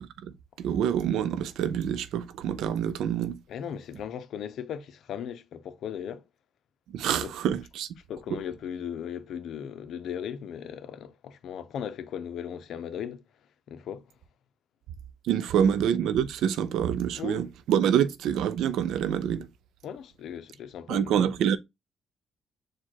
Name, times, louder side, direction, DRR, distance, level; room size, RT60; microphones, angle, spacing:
voice 1, 0.6-3.4 6.9-7.9 8.3-8.4 15.2-19.5 20.9-21.6, right 9 dB, 85° right, 0.5 m, -26 dB
voice 2, 3.5-6.2 7.2-7.3 8.1-13.2 13.7-14.0 15.6-15.7 17.1-17.4 18.0-18.1 19.8-21.3, left 8 dB, 75° left, 0.7 m, -37 dB
4.4 x 2.4 x 4.5 m
cardioid pair, 90°, 0 cm